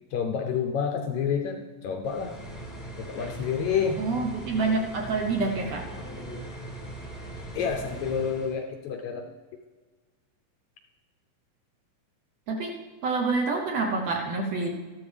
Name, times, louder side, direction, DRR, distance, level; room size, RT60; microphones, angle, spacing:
voice 1, 0.1-2.3 3.1-4.0 7.5-9.3, left 7 dB, 75° left, 4 dB, 1.7 m, -29 dB
sound 1, 2.0-8.6, right 1 dB, 10° left, 1.2 m, -40 dB
voice 2, 4.0-5.9 12.5-12.7 13.0-14.7, right 3 dB, 65° right, 1 dB, 1.8 m, -27 dB
13.5 x 12.5 x 3.4 m, 1.3 s
omnidirectional pair, 3.8 m